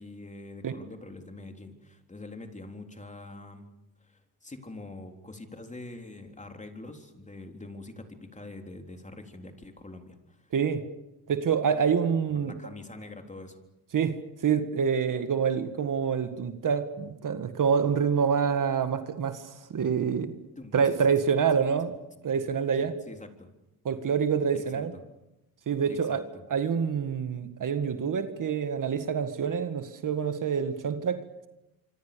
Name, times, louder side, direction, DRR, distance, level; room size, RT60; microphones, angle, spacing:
voice 1, 0.0-3.7 4.0-10.5 12.4-13.6 20.6-20.8 21.8-21.9 22.7-23.5 24.5-24.9 25.9-26.4, left 2 dB, 20° left, 5 dB, 3.8 m, -45 dB
voice 2, 10.5-10.8 11.3-12.5 13.9-20.3 20.7-22.0 22.2-22.9 23.9-24.9 25.7-26.2 26.5-31.5, right 6 dB, 55° right, 9 dB, 2.0 m, -27 dB
26.0 x 25.0 x 7.0 m, 0.92 s
cardioid pair, 85°, 38 cm